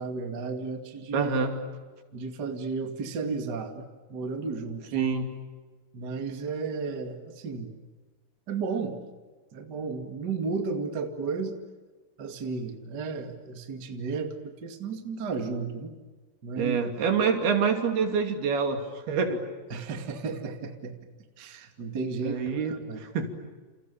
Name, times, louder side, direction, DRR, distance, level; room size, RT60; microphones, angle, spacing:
voice 1, 0.0-1.3 2.1-3.8 4.1-5.0 5.9-7.7 8.5-9.0 9.5-11.6 12.2-15.9 16.4-16.8 19.7-21.0 21.4-23.0, right 4 dB, 30° right, 6 dB, 2.2 m, -33 dB
voice 2, 1.1-1.6 4.9-5.3 16.6-19.4 22.2-23.3, right 5 dB, 75° right, 6 dB, 4.7 m, -26 dB
30.0 x 28.5 x 6.9 m, 1.3 s
omnidirectional pair, 4.5 m